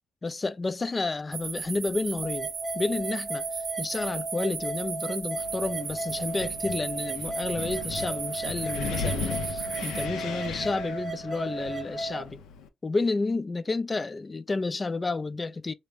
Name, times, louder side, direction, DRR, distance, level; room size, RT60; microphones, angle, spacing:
voice 1, 0.2-2.5 2.7-12.4 12.8-15.7, left 3 dB, 25° left, 0.3 m, -31 dB
sound 1, 1.3-10.1, right 6 dB, 60° right, 0.7 m, -36 dB
sound 2, 2.2-12.2, right 2 dB, 15° right, 0.6 m, -35 dB
Wind, 5.4-12.7, left 5 dB, 90° left, 0.5 m, -37 dB
3.4 x 2.1 x 3.2 m
cardioid pair, 90°, 0 cm